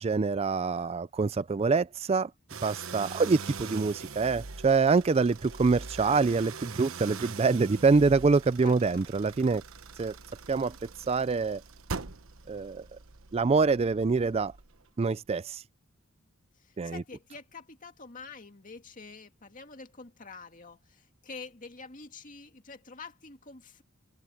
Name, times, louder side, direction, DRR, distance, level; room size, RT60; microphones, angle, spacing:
voice 1, 0.0-2.3 2.6-9.6 10.0-10.1 10.5-10.7 11.1-11.6 12.5-12.8 13.3-14.5 15.0-15.6 16.8-17.0, right 4 dB, 30° right, 0.4 m, -25 dB
sound 1, 2.5-14.9, right 4 dB, 70° right, 1.2 m, -43 dB
voice 2, 8.6-9.1 16.5-23.8, left 4 dB, 40° left, 2.3 m, -47 dB
open air
head